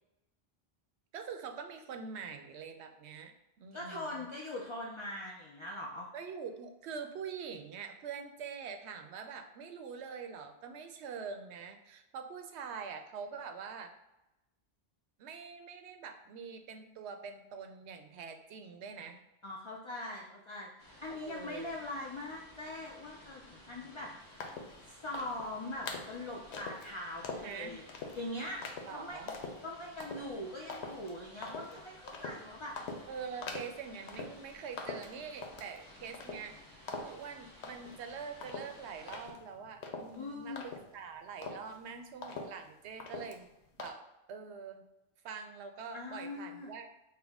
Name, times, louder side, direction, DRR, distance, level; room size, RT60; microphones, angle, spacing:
voice 1, 1.1-3.3 3.6-4.2 6.1-13.9 15.2-19.2 21.1-21.7 27.4-27.8 28.9-29.3 33.1-43.5 43.8-44.0 44.3-44.8 45.2-46.9, right 6 dB, 85° right, 6 dB, 0.9 m, -44 dB
voice 2, 3.7-6.1 19.4-27.8 28.1-28.6 28.9-29.2 29.6-33.1 40.1-40.6 45.9-46.7, left 1 dB, 40° left, -2 dB, 0.4 m, -42 dB
sound 1, 20.8-39.3, left 1 dB, 20° left, 0.8 m, -56 dB
sound 2, 24.4-24.8 25.1-25.5 25.9-26.2 26.5-26.9 27.2-27.5 27.9-28.2 28.6-28.9 29.3-29.6 30.0-30.3 30.7-31.1 31.4-31.7 32.1-32.4 32.8-33.1 33.4-33.8 34.1-34.5 34.8-35.8 36.1-36.6 36.9-37.2 37.6-38.0 38.4-41.1 41.4-41.8 42.2-42.7 43.0-43.4 43.8-43.9, left 4 dB, 90° left, 0.9 m, -43 dB
5.8 x 2.1 x 3.5 m, 0.95 s
omnidirectional pair, 1.1 m